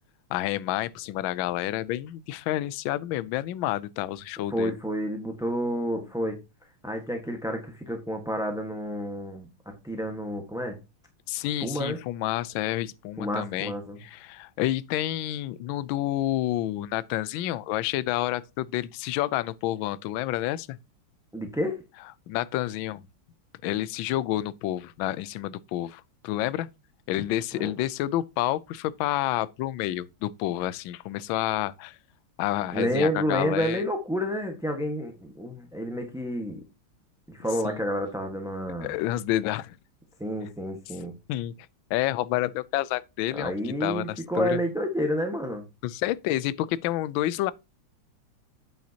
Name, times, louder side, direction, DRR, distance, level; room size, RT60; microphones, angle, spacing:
voice 1, 0.3-4.8 11.3-13.7 14.0-20.8 22.3-23.0 23.6-26.7 27.1-32.0 32.4-33.8 37.6-37.8 38.8-39.8 41.3-41.5 41.9-44.6 45.8-47.5, left 14 dB, 75° left, 1.3 m, -29 dB
voice 2, 4.5-6.4 6.8-9.5 9.8-10.7 11.6-12.0 13.2-14.0 21.3-21.8 27.5-27.7 32.7-36.6 37.3-38.9 40.2-41.1 43.3-45.6, equal, ahead, 0.9 m, -29 dB
8.7 x 7.3 x 2.8 m
omnidirectional pair, 2.4 m